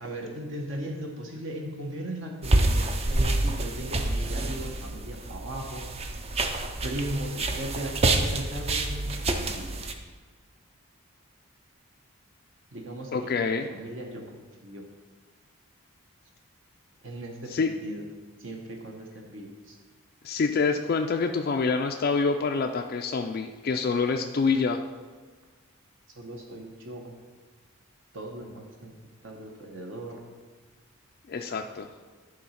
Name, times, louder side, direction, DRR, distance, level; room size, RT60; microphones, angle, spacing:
voice 1, 0.0-5.9 6.8-9.8 12.7-14.2 14.6-14.9 17.0-18.0 18.4-19.8 26.2-27.1 28.1-28.9 29.2-30.2, right 1 dB, 55° right, 1 dB, 0.9 m, -38 dB
sound 1, 2.4-9.9, right 2 dB, 25° right, 0.5 m, -27 dB
voice 2, 13.1-13.7 17.5-17.7 20.2-24.8 31.3-31.9, left 4 dB, 45° left, 3 dB, 0.3 m, -26 dB
11.0 x 3.9 x 5.7 m, 1.4 s
head